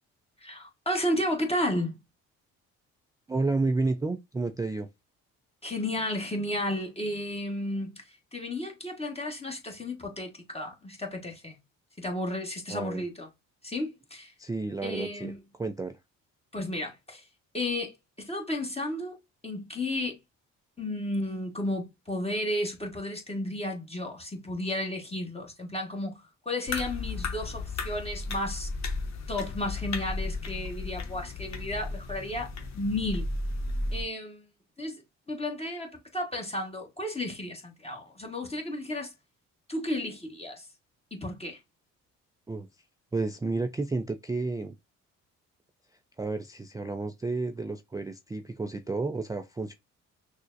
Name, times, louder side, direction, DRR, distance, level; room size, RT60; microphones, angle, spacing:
voice 1, 0.4-2.0 5.6-11.6 12.0-13.3 13.6-14.3 14.8-15.4 16.5-17.3 17.5-19.2 19.4-20.2 20.8-28.7 29.3-33.3 33.9-34.5 34.8-35.0 35.3-39.1 39.7-40.7 41.1-41.6, left 1 dB, 15° left, 1.2 m, -33 dB
voice 2, 3.3-4.9 12.7-13.0 14.4-15.3 15.6-16.0 42.5-42.7 43.1-44.7 46.2-49.7, right 3 dB, 10° right, 0.3 m, -31 dB
sound 1, 26.7-34.0, left 3 dB, 45° left, 0.9 m, -34 dB
6.1 x 2.1 x 2.5 m
hypercardioid pair, 50°, 37 cm